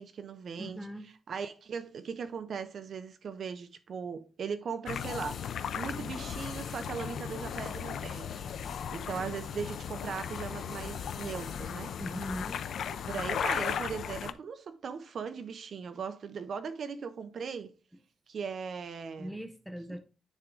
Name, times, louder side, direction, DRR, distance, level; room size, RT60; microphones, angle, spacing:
voice 1, 0.0-8.4 8.9-11.9 12.9-17.7 18.3-19.3, right 6 dB, 55° right, 0.6 m, -39 dB
voice 2, 0.6-1.1 11.9-12.6 19.2-20.0, equal, ahead, 0.7 m, -39 dB
sound 1, 4.9-14.3, left 8 dB, 80° left, 0.4 m, -36 dB
sound 2, 4.9-13.8, left 5 dB, 55° left, 0.9 m, -49 dB
9.8 x 3.6 x 3.7 m
wide cardioid pair, 180°, 0 cm